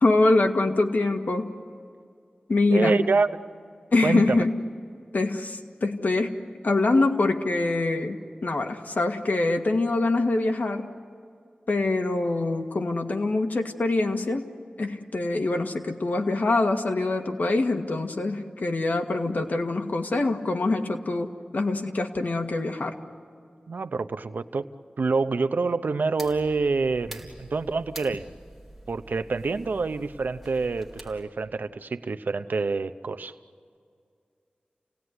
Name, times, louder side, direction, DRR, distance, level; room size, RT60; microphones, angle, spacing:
voice 1, 0.0-1.5 2.5-3.1 3.9-4.6 5.1-10.9 11.7-14.5 14.8-23.0, left 2 dB, 75° left, 4 dB, 1.8 m, -24 dB
voice 2, 2.7-3.4 4.0-4.4 23.7-24.6 25.0-28.2 28.9-33.3, right 4 dB, 90° right, 11 dB, 0.8 m, -26 dB
sound 1, 26.2-31.2, right 1 dB, ahead, 3.9 m, -46 dB
29.5 x 18.5 x 9.7 m, 2.3 s
wide cardioid pair, 80°, 3 cm